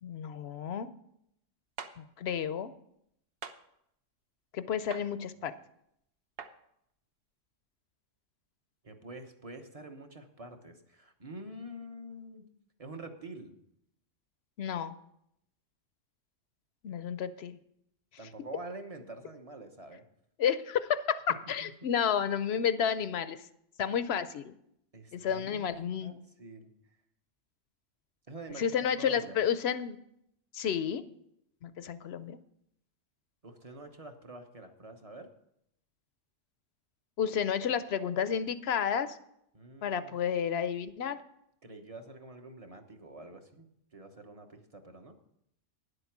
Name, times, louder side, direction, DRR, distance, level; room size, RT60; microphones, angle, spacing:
voice 1, 0.0-0.9 2.0-2.7 4.5-5.5 14.6-14.9 16.8-17.6 20.4-23.4 23.8-24.5 25.1-26.2 28.6-30.0 30.5-31.0 31.6-32.4 37.2-39.2 39.8-41.2, left 8 dB, 65° left, 13 dB, 0.8 m, -31 dB
sound 1, 1.8-1.9 3.4-3.6 4.9-5.1 6.4-6.5, right 6 dB, 55° right, 0.9 m, -41 dB
voice 2, 8.8-12.4 12.8-13.6 18.2-20.0 21.6-21.7 24.9-25.7 26.0-26.7 28.3-29.4 33.4-35.3 39.5-40.2 41.6-43.7 43.9-45.2, right 2 dB, 30° right, 5 dB, 1.0 m, -46 dB
10.5 x 8.0 x 6.0 m, 0.76 s
omnidirectional pair, 1.3 m